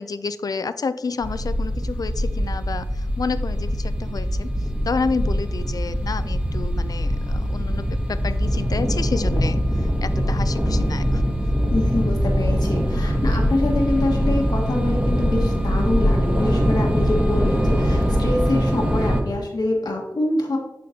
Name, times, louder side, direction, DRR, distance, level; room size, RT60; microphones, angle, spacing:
voice 1, 0.0-4.5 4.9-9.6 10.0-11.3, left 4 dB, 65° left, 13 dB, 0.4 m, -29 dB
sound 1, 1.2-19.2, equal, 20° right, 1.1 m, -22 dB
voice 2, 11.7-20.6, left 2 dB, 85° left, -1 dB, 1.5 m, -25 dB
9.9 x 3.9 x 2.8 m, 0.99 s
cardioid pair, 45°, 7 cm